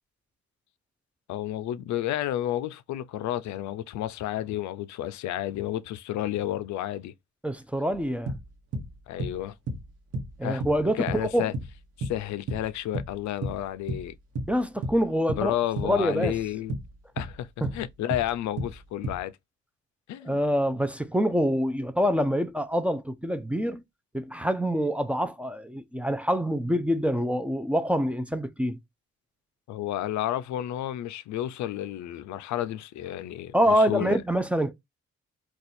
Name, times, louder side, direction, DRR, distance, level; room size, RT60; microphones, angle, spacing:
voice 1, 1.3-7.1 9.1-9.5 10.4-10.6 11.0-11.5 12.0-14.1 15.3-16.8 17.2-17.5 17.7-19.3 20.1-20.4 29.7-34.2, left 12 dB, 70° left, 0.4 m, -31 dB
voice 2, 7.4-8.3 10.4-11.5 14.5-15.5 15.8-16.3 17.6-17.7 20.2-23.8 24.1-28.8 33.5-34.7, equal, 5° right, 0.4 m, -26 dB
sound 1, 7.9-8.0 8.3-8.9 9.2-9.9 10.1-10.4 10.6-10.8 11.1-11.7 12.0-13.2 13.4-14.1 14.4-15.0 15.3-15.5 15.8-16.4 16.7-17.4 17.6-17.9 18.1-18.3 18.6-19.2, right 1 dB, 55° right, 1.0 m, -32 dB
2.5 x 2.3 x 4.1 m
cardioid pair, 90°, 30 cm